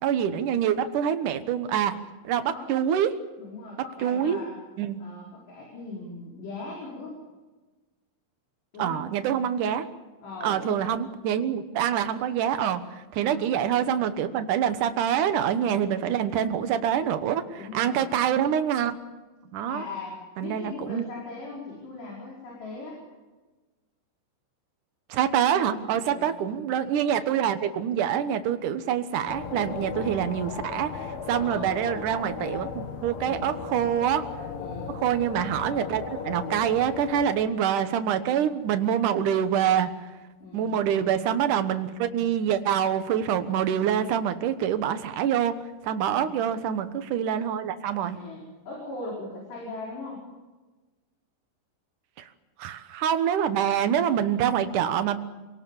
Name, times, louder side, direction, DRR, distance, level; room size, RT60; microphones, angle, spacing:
voice 1, 0.0-3.2 4.0-4.4 4.8-5.0 8.8-9.9 10.4-19.0 19.5-19.8 20.4-21.0 25.1-34.3 34.9-39.9 40.5-45.5 45.8-48.2 52.2-52.3 52.6-55.2, right 9 dB, 70° right, 9 dB, 2.0 m, -26 dB
voice 2, 3.4-4.6 5.0-7.2 8.7-9.1 10.2-10.9 13.2-13.5 17.6-18.1 19.7-23.0 26.1-26.3 31.3-31.8 33.2-33.5 34.6-34.9 40.4-40.8 44.6-44.8 46.0-46.2 48.1-50.2, left 3 dB, 65° left, -3 dB, 7.2 m, -39 dB
sound 1, 29.3-37.3, left 6 dB, 85° left, 4.8 m, -36 dB
27.5 x 18.5 x 7.2 m, 1.2 s
omnidirectional pair, 5.3 m